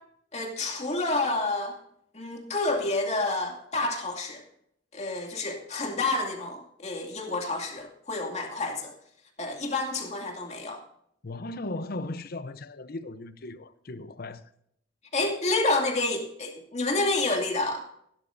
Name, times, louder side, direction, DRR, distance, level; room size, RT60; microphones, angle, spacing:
voice 1, 0.3-1.8 2.1-4.4 4.9-8.9 9.4-10.8 15.1-17.9, left 2 dB, 35° left, 2.4 m, -29 dB
voice 2, 11.2-14.4, left 2 dB, 50° left, 0.7 m, -37 dB
16.0 x 11.5 x 2.6 m
head